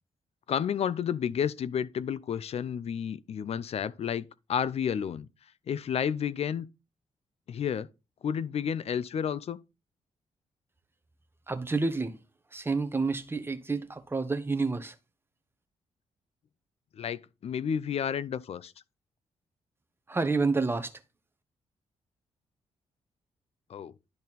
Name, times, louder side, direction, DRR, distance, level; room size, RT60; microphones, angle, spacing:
voice 1, 0.5-5.3 5.7-6.7 7.5-7.9 8.2-9.6 16.9-18.7 23.7-23.9, left 8 dB, 60° left, 0.5 m, -31 dB
voice 2, 11.5-12.2 12.5-14.9 20.1-20.9, right 3 dB, 20° right, 1.1 m, -29 dB
10.5 x 4.1 x 4.1 m
cardioid pair, 70°, 12 cm